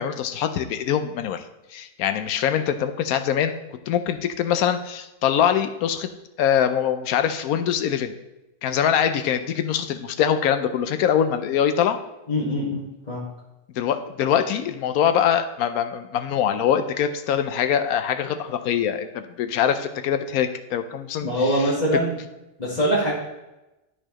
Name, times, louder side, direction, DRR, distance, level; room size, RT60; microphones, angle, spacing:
voice 1, 0.0-1.4 1.7-3.6 3.9-6.1 6.4-8.1 8.6-12.0 13.8-21.7, left 9 dB, 75° left, 9 dB, 1.0 m, -23 dB
voice 2, 12.3-13.3 21.2-22.1 22.6-23.1, equal, 30° left, -8 dB, 1.5 m, -23 dB
12.5 x 4.4 x 3.0 m, 0.98 s
omnidirectional pair, 1.6 m